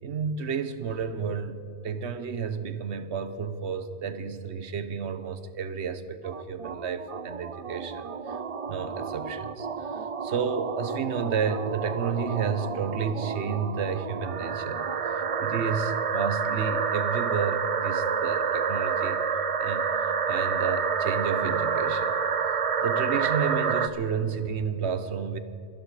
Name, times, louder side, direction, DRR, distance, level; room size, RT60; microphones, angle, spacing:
voice 1, 0.0-8.4 8.7-9.7 10.2-14.8 15.1-19.2 19.6-22.2 22.8-25.4, right 6 dB, 90° right, 12 dB, 1.2 m, -31 dB
sound 1, 6.2-23.9, right 6 dB, 40° right, 0.5 m, -29 dB
24.0 x 11.0 x 4.8 m, 3.0 s
omnidirectional pair, 1.1 m